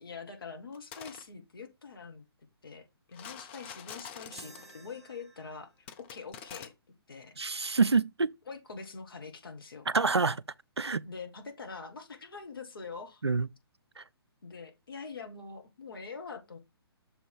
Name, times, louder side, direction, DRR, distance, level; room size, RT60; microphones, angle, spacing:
voice 1, 0.0-2.2 2.6-6.7 7.1-7.4 8.5-9.9 11.0-13.2 14.4-16.6, left 4 dB, 60° left, 1.7 m, -44 dB
sound 1, 0.7-1.2 3.1-4.7 5.9-6.7, left 8 dB, 25° left, 0.7 m, -45 dB
sound 2, 4.3-5.8, right 1 dB, ahead, 1.4 m, -51 dB
voice 2, 7.4-8.3 9.9-10.4 10.8-11.0 13.2-13.5 14.0-14.1, right 4 dB, 85° right, 0.4 m, -27 dB
6.7 x 3.8 x 4.6 m
figure-of-eight pair, 130°, 13 cm